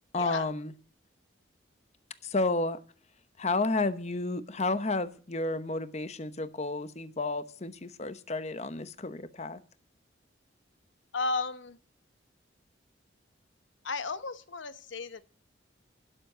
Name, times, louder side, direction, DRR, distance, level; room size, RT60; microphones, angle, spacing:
voice 1, 0.1-0.7 2.2-2.8 3.4-9.6, left 2 dB, 35° left, 13 dB, 0.9 m, -31 dB
voice 2, 11.1-11.8 13.8-15.2, left 3 dB, 80° left, 13 dB, 0.9 m, -33 dB
12.0 x 11.5 x 7.8 m, 0.43 s
head